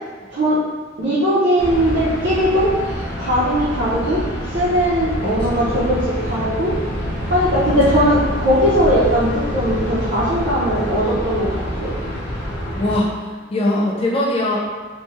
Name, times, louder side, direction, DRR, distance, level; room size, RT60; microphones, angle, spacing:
voice 1, 1.0-2.7 3.2-4.2 4.5-6.7 7.3-11.5 11.8-12.0, equal, 60° right, -11 dB, 0.6 m, -19 dB
sound 1, 1.6-13.0, equal, 50° left, 0.8 m, -26 dB
voice 2, 7.6-8.0 12.8-14.6, left 1 dB, 30° left, -4 dB, 0.3 m, -21 dB
3.0 x 2.1 x 2.8 m, 1.4 s
head